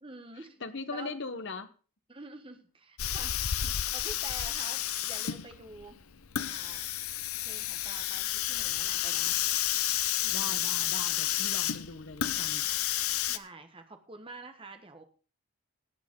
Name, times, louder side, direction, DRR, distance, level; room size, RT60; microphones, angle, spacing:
voice 1, 0.0-0.6 0.9-1.1 2.1-3.6 3.9-6.0 6.5-6.9 7.4-9.4 10.2-10.6 11.4-11.5 13.3-15.0, right 2 dB, 25° right, 6 dB, 1.4 m, -47 dB
voice 2, 0.6-1.7 10.3-12.8, left 3 dB, 55° left, 10 dB, 1.2 m, -40 dB
Hiss, 3.0-13.4, left 12 dB, 75° left, 0.7 m, -31 dB
17.5 x 8.4 x 3.8 m, 0.37 s
head